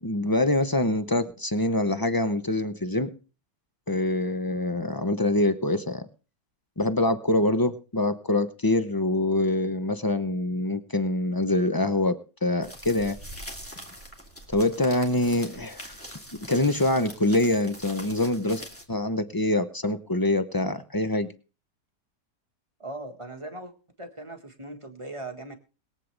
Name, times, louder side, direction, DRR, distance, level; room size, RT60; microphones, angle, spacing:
voice 1, 0.0-3.1 3.9-6.1 6.8-13.2 14.5-16.0 16.5-18.6 18.9-21.3, left 2 dB, 35° left, 10 dB, 0.3 m, -25 dB
sound 1, 12.6-18.8, equal, 10° left, 2.4 m, -43 dB
voice 2, 22.8-23.7 24.0-25.5, right 2 dB, 20° right, 5 dB, 1.5 m, -39 dB
22.0 x 8.5 x 3.3 m, 0.35 s
omnidirectional pair, 1.8 m